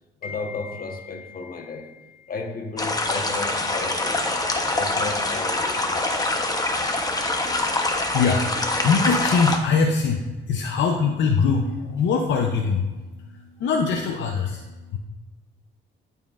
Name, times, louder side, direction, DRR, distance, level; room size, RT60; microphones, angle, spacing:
voice 1, 0.2-4.4 4.7-6.3, left 4 dB, 45° left, 3 dB, 1.2 m, -34 dB
sound 1, 2.8-9.6, left 2 dB, 20° left, 0.9 m, -24 dB
voice 2, 7.1-15.0, left 5 dB, 70° left, 2 dB, 0.7 m, -23 dB
12.5 x 4.3 x 2.5 m, 1.2 s
cardioid pair, 90°, 20 cm